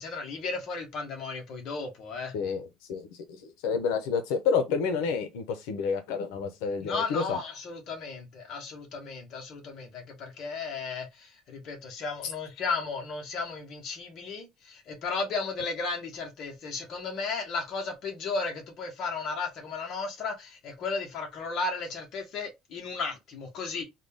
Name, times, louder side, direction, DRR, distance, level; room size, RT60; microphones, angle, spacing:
voice 1, 0.0-2.3 6.8-23.8, left 4 dB, 40° left, 1.1 m, -34 dB
voice 2, 2.3-7.4, left 5 dB, 85° left, 0.7 m, -29 dB
3.8 x 2.3 x 3.4 m
cardioid pair, 175°, 0 cm